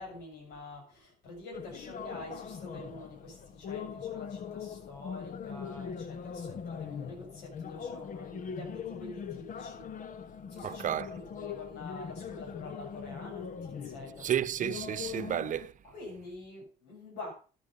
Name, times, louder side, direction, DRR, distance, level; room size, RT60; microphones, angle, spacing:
voice 1, 0.0-9.9 10.5-14.3 15.8-17.3, left 2 dB, 90° left, 7.8 m, -46 dB
sound 1, 1.5-15.7, left 7 dB, 50° left, 1.3 m, -41 dB
voice 2, 10.6-11.1 14.2-15.7, right 10 dB, 50° right, 1.0 m, -32 dB
14.5 x 9.2 x 5.4 m
cardioid pair, 110°, 17 cm